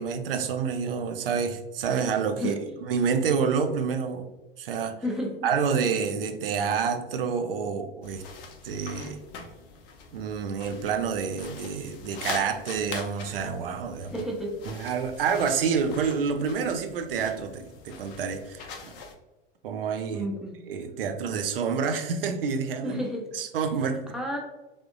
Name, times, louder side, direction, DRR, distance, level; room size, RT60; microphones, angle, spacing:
voice 1, 0.0-2.6 2.9-4.3 4.6-5.0 5.4-8.2 8.6-9.2 10.1-14.1 14.7-19.0 19.6-20.3 20.7-23.0 23.3-24.0, right 6 dB, 75° right, 7 dB, 0.5 m, -28 dB
voice 2, 2.4-2.8 5.0-5.4 14.1-14.5 20.1-20.6 22.8-23.3 24.1-24.4, equal, ahead, -1 dB, 0.7 m, -31 dB
sound 1, 8.0-19.1, left 5 dB, 50° left, 0.6 m, -43 dB
3.4 x 2.5 x 2.5 m, 1.1 s
figure-of-eight pair, 85°, 29 cm